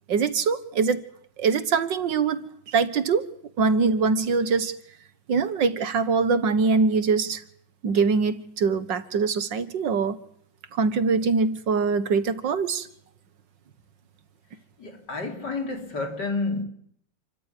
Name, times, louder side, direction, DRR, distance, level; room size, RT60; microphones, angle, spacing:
voice 1, 0.1-1.0 1.4-3.3 3.6-4.7 5.3-7.4 7.8-10.2 10.8-12.9, right 4 dB, 70° right, 2.0 m, -23 dB
voice 2, 14.8-16.7, left 3 dB, 60° left, 4.5 m, -30 dB
29.0 x 14.0 x 9.9 m
omnidirectional pair, 2.1 m